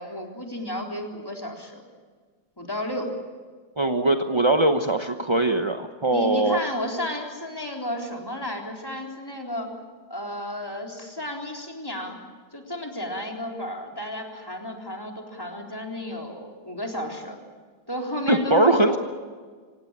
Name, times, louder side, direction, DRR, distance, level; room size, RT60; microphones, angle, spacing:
voice 1, 0.0-1.8 2.6-3.1 6.1-9.8 10.1-12.2 12.5-17.4 17.9-19.0, left 1 dB, 10° left, 1 dB, 3.8 m, -32 dB
voice 2, 3.8-6.6 18.3-19.0, right 2 dB, 30° right, 6 dB, 0.5 m, -21 dB
26.5 x 17.5 x 8.8 m, 1.5 s
omnidirectional pair, 2.2 m